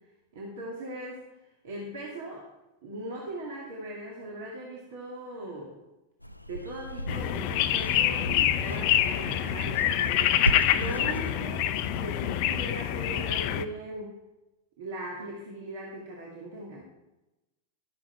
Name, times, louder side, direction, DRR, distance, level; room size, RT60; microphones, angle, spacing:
voice 1, 0.3-1.2 1.6-2.5 2.8-5.8 6.5-14.1 14.8-16.8, right 1 dB, 55° right, -3 dB, 2.2 m, -39 dB
sound 1, 6.2-12.9, equal, 90° left, 0.5 m, -37 dB
sound 2, 7.1-13.6, left 11 dB, 45° left, 0.6 m, -26 dB
12.5 x 9.7 x 4.5 m, 1.0 s
figure-of-eight pair, 90°, 0 cm